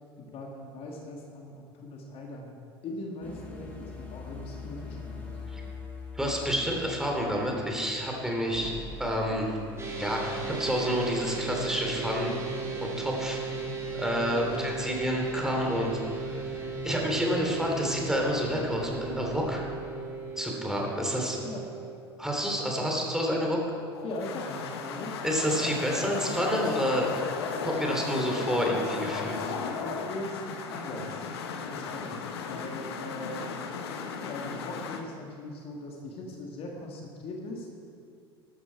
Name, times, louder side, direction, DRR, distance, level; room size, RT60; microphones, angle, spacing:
voice 1, 0.2-5.8 14.4-14.8 21.4-21.7 24.0-25.2 29.8-31.3 31.7-33.6 34.3-37.7, left 2 dB, 45° left, 0 dB, 2.1 m, -40 dB
sound 1, 3.2-8.2 8.5-19.6, left 3 dB, 10° left, 3.1 m, -43 dB
voice 2, 6.1-8.7 9.0-9.6 10.0-12.4 12.8-13.4 13.9-16.4 16.8-19.6 20.4-21.4 22.2-23.6 25.2-27.1 27.6-29.4, equal, 5° right, 0 dB, 3.1 m, -29 dB
sound 2, 9.8-21.9, right 4 dB, 20° right, 3.6 m, -36 dB
sound 3, 23.9-35.0, left 5 dB, 70° left, 1.1 m, -35 dB
12.5 x 12.5 x 4.7 m, 2.3 s
figure-of-eight pair, 70°, 14 cm